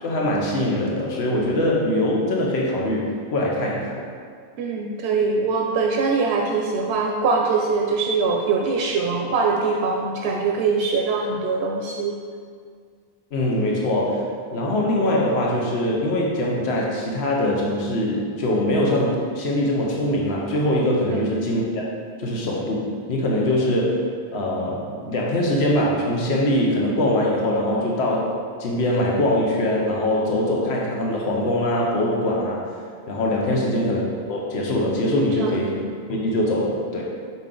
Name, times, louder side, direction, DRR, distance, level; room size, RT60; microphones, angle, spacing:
voice 1, 0.0-4.0 13.3-21.9 22.2-24.0 24.3-28.3 28.6-32.6 33.1-34.0 34.3-35.7 36.1-37.0, left 1 dB, 80° left, -2 dB, 1.1 m, -22 dB
voice 2, 4.6-12.2 21.1-21.3 33.5-33.8 35.3-35.8, right 4 dB, 80° right, 1 dB, 0.8 m, -23 dB
6.0 x 5.3 x 3.8 m, 2.1 s
omnidirectional pair, 1.1 m